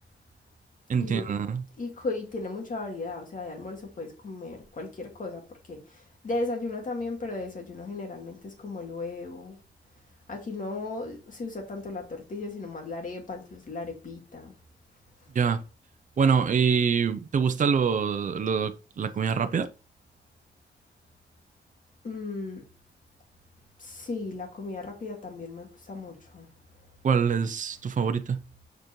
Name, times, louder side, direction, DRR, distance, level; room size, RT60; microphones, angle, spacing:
voice 1, 0.9-1.6 15.3-15.6 16.2-19.7 27.0-28.4, right 6 dB, 45° right, 0.6 m, -25 dB
voice 2, 1.8-9.6 10.3-14.5 22.0-22.6 23.8-26.5, left 3 dB, 45° left, 2.1 m, -36 dB
6.6 x 5.2 x 3.1 m
wide cardioid pair, 180°, 18 cm